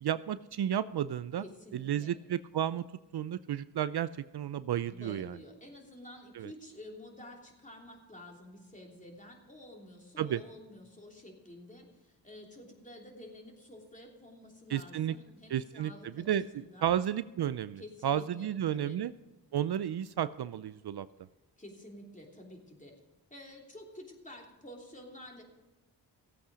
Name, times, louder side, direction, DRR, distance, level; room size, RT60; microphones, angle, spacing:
voice 1, 0.0-1.4 1.7-2.8 3.1-5.4 6.3-6.5 10.2-10.4 14.7-15.1 15.5-19.1 19.5-21.1, right 10 dB, 65° right, 15 dB, 0.5 m, -32 dB
voice 2, 1.4-2.2 4.9-16.9 17.8-19.0 21.6-23.0 23.3-25.4, left 1 dB, 15° left, 0 dB, 3.1 m, -50 dB
15.5 x 8.4 x 5.0 m, 1.1 s
cardioid pair, 55°, 43 cm